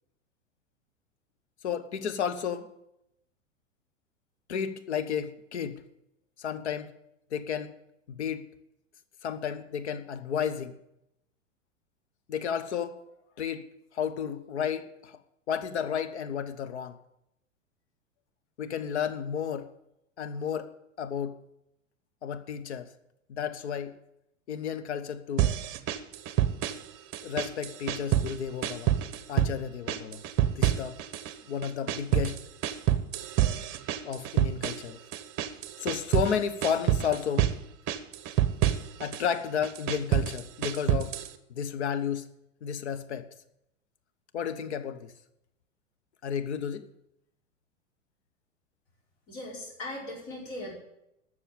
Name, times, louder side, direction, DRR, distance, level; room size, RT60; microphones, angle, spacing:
voice 1, 1.6-2.7 4.5-5.8 6.4-6.9 7.3-7.7 8.1-8.5 9.2-10.8 12.3-13.0 13.4-13.7 13.9-15.2 15.5-17.0 18.6-19.7 20.2-21.4 22.2-22.9 23.3-23.9 24.5-25.5 27.2-29.0 29.3-30.2 30.6-31.0 31.5-32.4 34.0-35.0 35.8-37.5 39.0-41.2 41.5-42.3 42.6-43.3 44.3-45.1 46.2-46.9, left 7 dB, 65° left, 1.1 m, -32 dB
sound 1, 25.4-26.9 27.1-28.4 28.6-29.6 29.9-31.3 31.6-36.3 36.6-37.6 37.9-39.2 39.6-41.3, right 11 dB, 30° right, 0.9 m, -27 dB
voice 2, 49.3-50.7, left 1 dB, 45° left, 5.0 m, -39 dB
12.5 x 6.7 x 8.9 m
figure-of-eight pair, 90°, 37 cm